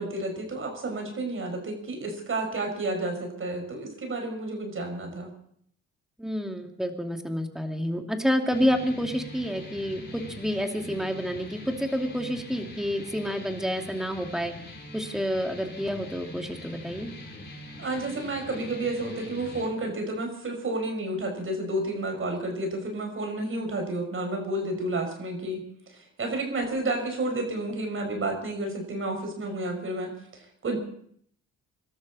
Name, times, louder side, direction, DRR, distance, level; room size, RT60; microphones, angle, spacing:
voice 1, 0.0-5.3 17.8-25.6 25.9-30.8, right 2 dB, 45° right, 3 dB, 5.9 m, -31 dB
voice 2, 6.2-14.5 14.9-17.1, equal, ahead, 3 dB, 2.6 m, -29 dB
sound 1, 8.5-19.7, left 1 dB, 35° left, 5.6 m, -43 dB
24.5 x 13.0 x 4.2 m, 0.64 s
cardioid pair, 90°, 30 cm